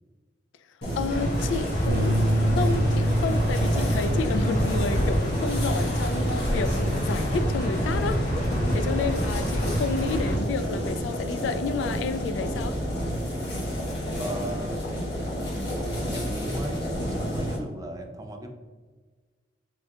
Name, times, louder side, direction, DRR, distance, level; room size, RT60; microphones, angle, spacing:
sound 1, 0.8-17.6, equal, 65° left, 1.3 m, -30 dB
voice 1, 1.0-8.3 8.7-12.8, left 4 dB, 85° left, 0.3 m, -30 dB
sound 2, 1.1-10.4, equal, 45° left, 1.1 m, -28 dB
sound 3, 1.9-8.1, right 1 dB, 65° right, 0.6 m, -28 dB
voice 2, 14.1-15.0 15.5-18.5, right 1 dB, 20° right, 0.4 m, -37 dB
4.5 x 3.3 x 2.7 m
head